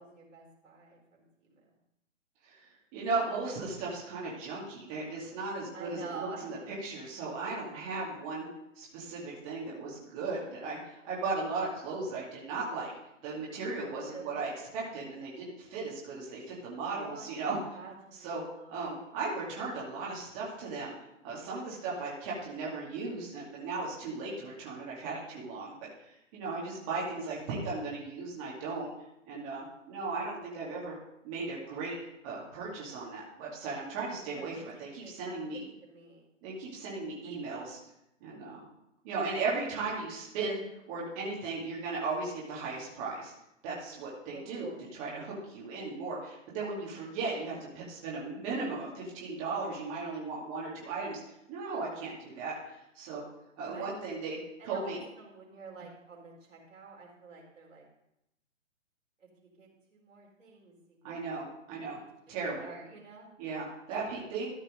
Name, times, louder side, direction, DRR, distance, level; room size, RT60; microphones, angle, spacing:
voice 1, 0.0-1.6 5.7-6.7 14.0-14.6 16.9-17.3 17.6-18.8 26.9-27.1 34.2-36.3 37.2-37.4 39.6-39.7 44.3-44.9 53.6-54.0 54.6-57.9 59.2-61.2 61.8-62.1 62.4-63.3 63.9-64.0, right 4 dB, 75° right, -1 dB, 4.0 m, -49 dB
voice 2, 2.4-8.5 8.8-12.9 13.2-17.6 18.2-18.4 18.7-20.9 21.2-28.9 29.3-31.0 31.2-32.0 32.2-35.6 36.4-37.8 38.2-38.6 39.0-40.6 40.9-43.3 43.6-44.7 45.0-51.2 51.5-53.2 53.6-54.4 54.6-55.0 61.0-62.0 62.3-62.7 63.4-64.5, right 3 dB, 25° right, -5 dB, 2.6 m, -36 dB
14.0 x 5.4 x 5.1 m, 0.83 s
hypercardioid pair, 145°, 38 cm